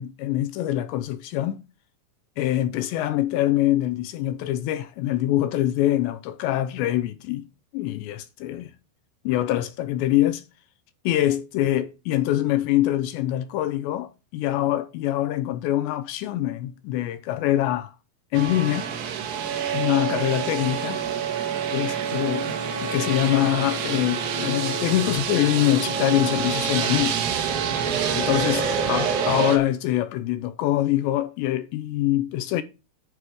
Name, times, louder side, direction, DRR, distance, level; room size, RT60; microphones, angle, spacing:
voice 1, 0.0-1.6 2.4-7.5 7.7-8.7 9.3-10.4 11.1-17.9 18.3-18.9 19.7-21.0 21.7-22.5 22.8-27.2 28.1-32.6, left 13 dB, 80° left, 2.6 m, -24 dB
sound 1, 18.3-29.6, right 7 dB, 90° right, 4.5 m, -27 dB
11.5 x 4.8 x 6.1 m
omnidirectional pair, 5.8 m